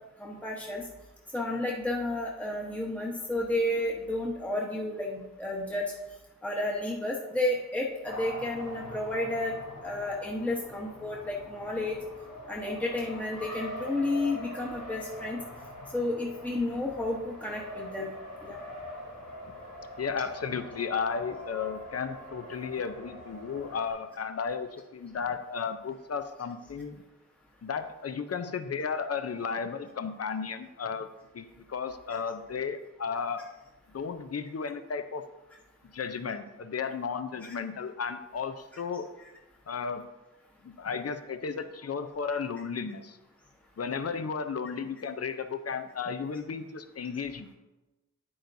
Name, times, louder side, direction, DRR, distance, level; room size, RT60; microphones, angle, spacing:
voice 1, 0.2-0.9 1.3-5.9 6.4-9.5 9.8-12.0 12.5-15.4 15.9-18.1 18.4-18.6 37.4-37.6 38.7-38.8, left 1 dB, 5° left, -2 dB, 1.0 m, -31 dB
Race car auto racing, 8.0-23.9, left 1 dB, 85° left, 3.2 m, -43 dB
voice 2, 20.0-27.0 27.6-31.1 31.3-33.4 33.9-35.2 35.9-39.1 39.7-40.0 40.6-43.2 43.8-47.5, left 6 dB, 50° left, 9 dB, 0.6 m, -34 dB
9.5 x 8.6 x 2.7 m, 1.1 s
wide cardioid pair, 65°, 33 cm